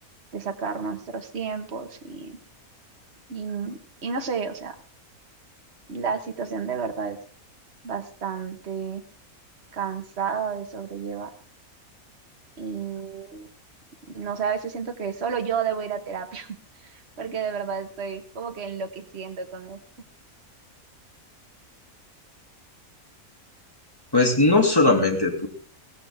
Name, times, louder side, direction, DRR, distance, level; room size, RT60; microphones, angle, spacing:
voice 1, 0.3-2.4 3.3-4.7 5.9-7.2 7.8-9.0 9.7-11.3 12.6-13.5 14.1-19.8, right 6 dB, 45° right, 5 dB, 1.7 m, -31 dB
voice 2, 24.1-25.5, left 2 dB, 15° left, 2 dB, 2.8 m, -19 dB
17.5 x 15.0 x 3.7 m, 0.42 s
omnidirectional pair, 1.5 m